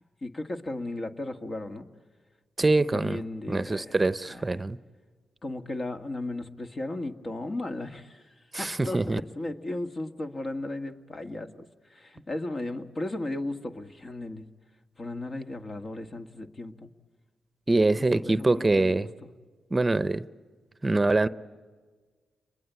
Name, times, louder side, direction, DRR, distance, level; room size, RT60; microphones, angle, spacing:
voice 1, 0.2-1.9 2.6-4.0 4.3-4.6 5.4-11.5 11.9-14.5 15.0-16.9 18.0-19.1, left 2 dB, 45° left, 6 dB, 1.8 m, -35 dB
voice 2, 2.6-3.2 3.5-4.8 8.5-9.2 17.7-19.1 19.7-20.2 20.8-21.3, right 2 dB, 25° right, 15 dB, 0.8 m, -24 dB
30.0 x 22.0 x 8.3 m, 1.5 s
supercardioid pair, 50°, 0 cm